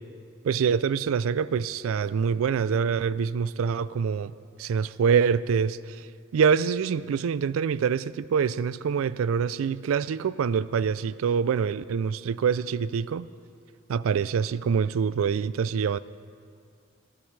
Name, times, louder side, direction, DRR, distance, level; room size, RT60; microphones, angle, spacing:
voice 1, 0.4-4.3 4.6-6.0 6.3-13.3 13.9-16.0, right 6 dB, 90° right, 18 dB, 0.3 m, -25 dB
20.0 x 14.0 x 3.2 m, 2.3 s
head